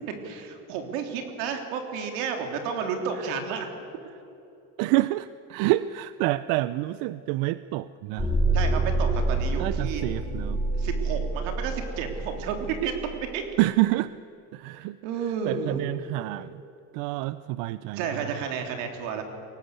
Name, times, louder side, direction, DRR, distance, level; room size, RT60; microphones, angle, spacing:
voice 1, 0.2-3.7 8.5-10.0 10.8-13.4 15.0-15.8 18.0-19.2, right 6 dB, 90° right, 5 dB, 3.5 m, -31 dB
voice 2, 4.8-8.4 9.6-10.6 13.6-14.1 14.5-15.0 15.4-16.6 16.9-18.3, right 17 dB, 70° right, 15 dB, 0.6 m, -27 dB
sound 1, 8.2-13.1, right 2 dB, 5° left, 3.1 m, -27 dB
23.0 x 18.5 x 8.3 m, 2.8 s
cardioid pair, 140°, 37 cm